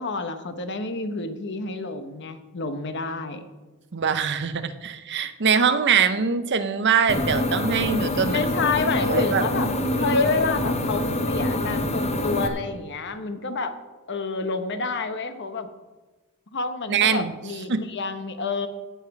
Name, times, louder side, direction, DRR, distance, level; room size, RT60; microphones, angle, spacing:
voice 1, 0.0-3.5 8.3-9.7 10.0-13.8 14.1-15.7 16.5-18.7, left 3 dB, 55° left, 8 dB, 1.0 m, -28 dB
voice 2, 3.9-8.4 9.0-9.4 10.0-10.2 16.9-17.3 17.7-17.8, right 6 dB, 55° right, 11 dB, 0.7 m, -23 dB
sound 1, 7.1-12.5, left 1 dB, 30° left, 0.9 m, -26 dB
16.5 x 5.8 x 5.9 m, 1.2 s
head